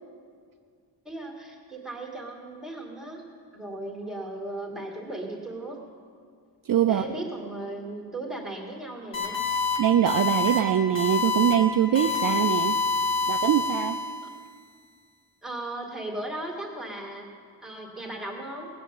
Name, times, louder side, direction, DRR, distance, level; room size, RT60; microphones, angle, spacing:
voice 1, 1.1-3.2 3.5-5.8 6.9-9.4 15.4-17.3 17.6-18.7, right 1 dB, ahead, -1 dB, 2.3 m, -36 dB
voice 2, 6.6-7.0 9.8-12.8 13.3-14.0, right 10 dB, 50° right, 8 dB, 0.5 m, -23 dB
sound 1, 9.1-9.8 10.1-10.6 11.0-11.5 12.0-14.3, left 4 dB, 80° left, 2.7 m, -26 dB
19.0 x 7.2 x 8.3 m, 2.2 s
wide cardioid pair, 155°, 44 cm